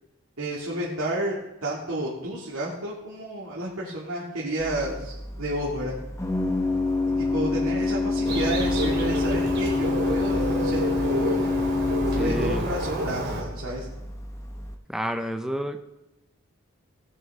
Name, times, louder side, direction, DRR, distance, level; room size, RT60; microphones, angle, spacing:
voice 1, 0.4-6.0 7.2-11.4 12.2-13.9, right 1 dB, 70° right, -6 dB, 2.4 m, -31 dB
Organ, 4.6-14.7, left 3 dB, 15° left, 0.9 m, -27 dB
Bird, 8.2-13.4, right 1 dB, 50° right, 2.9 m, -29 dB
voice 2, 12.2-12.7 14.9-15.9, equal, ahead, 6 dB, 0.5 m, -30 dB
18.0 x 6.8 x 3.6 m, 0.93 s
head